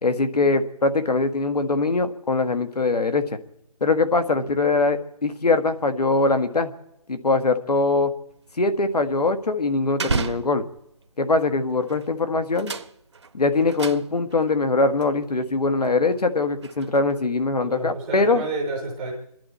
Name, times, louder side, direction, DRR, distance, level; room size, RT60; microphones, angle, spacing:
voice 1, 0.0-3.4 3.8-6.7 7.1-8.1 8.6-10.7 11.2-12.7 13.3-18.4, left 3 dB, 80° left, 9 dB, 1.6 m, -22 dB
sound 1, 8.3-11.0 11.8-12.1 12.4-14.5 15.0-15.1 15.7-17.2, right 4 dB, 45° right, 0.7 m, -33 dB
voice 2, 17.6-19.1, right 2 dB, 5° right, -1 dB, 0.6 m, -30 dB
27.5 x 11.5 x 4.3 m, 0.79 s
figure-of-eight pair, 170°, 20 cm